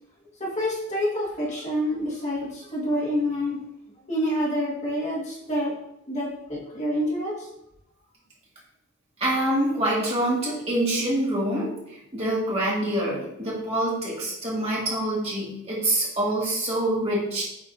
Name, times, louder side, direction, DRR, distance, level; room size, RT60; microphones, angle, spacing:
voice 1, 0.4-3.6 4.1-5.7 6.1-7.5, equal, 35° left, -6 dB, 1.8 m, -27 dB
voice 2, 9.2-11.7 12.1-17.4, right 1 dB, 30° right, -6 dB, 2.2 m, -25 dB
8.5 x 4.4 x 2.7 m, 0.80 s
head